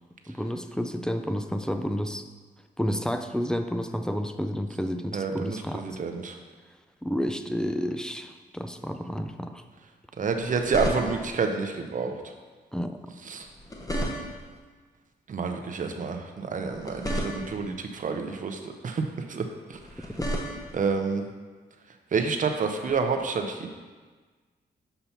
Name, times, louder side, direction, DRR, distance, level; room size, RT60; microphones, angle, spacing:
voice 1, 0.3-2.3 2.8-5.9 7.0-9.6 12.7-13.0, equal, 5° left, 8 dB, 0.4 m, -30 dB
voice 2, 5.1-6.4 10.2-12.2 13.3-13.5 15.3-20.1 20.7-21.3 22.1-23.7, right 5 dB, 50° right, 5 dB, 0.7 m, -29 dB
sound 1, 10.3-11.4 13.4-14.6 16.6-17.8 19.7-20.9 22.9-23.1, equal, 20° left, 0.9 m, -33 dB
6.7 x 2.9 x 5.7 m, 1.4 s
cardioid pair, 75°, 18 cm